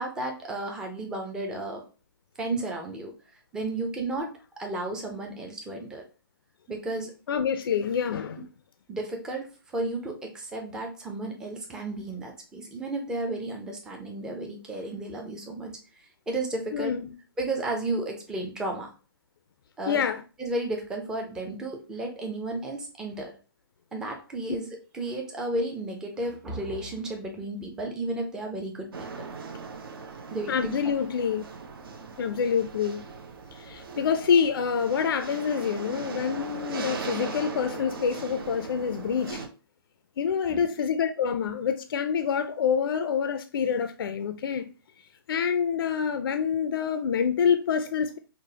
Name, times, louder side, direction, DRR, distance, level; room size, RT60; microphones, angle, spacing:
voice 1, 0.0-1.8 2.4-3.1 3.5-6.0 6.7-7.1 8.3-8.4 8.9-9.5 9.7-17.0 17.4-18.9 19.8-20.0 20.4-23.3 23.9-24.7 24.9-29.3 30.3-30.7 40.5-40.7, right 2 dB, 5° right, 0.4 m, -33 dB
voice 2, 7.3-8.4 16.7-17.1 19.9-20.2 30.5-31.4 32.2-33.1 33.5-39.4 40.2-44.7 45.3-48.2, left 7 dB, 70° left, 0.4 m, -26 dB
sound 1, 28.9-39.5, right 4 dB, 70° right, 0.7 m, -39 dB
4.9 x 2.0 x 2.7 m
hypercardioid pair, 155°, 13 cm